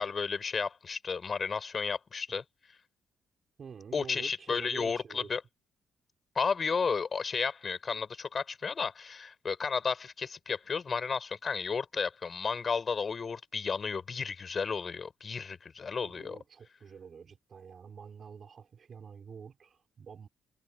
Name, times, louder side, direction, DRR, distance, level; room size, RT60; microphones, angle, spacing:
voice 1, 0.0-2.4 3.9-5.4 6.3-16.4, left 5 dB, 40° left, 6.3 m, -33 dB
voice 2, 3.6-5.4 16.0-20.3, right 6 dB, 50° right, 5.2 m, -48 dB
cardioid pair, 90°, 0 cm